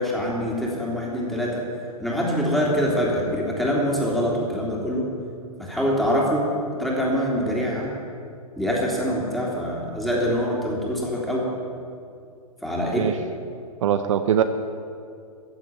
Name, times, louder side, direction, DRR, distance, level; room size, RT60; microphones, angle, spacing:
voice 1, 0.0-1.6 2.0-5.1 5.6-6.5 6.8-7.9 8.6-11.5 12.6-13.1, equal, ahead, -4 dB, 3.2 m, -24 dB
voice 2, 13.8-14.4, right 9 dB, 55° right, 9 dB, 0.7 m, -21 dB
15.0 x 7.6 x 9.0 m, 2.4 s
hypercardioid pair, 120°, 19 cm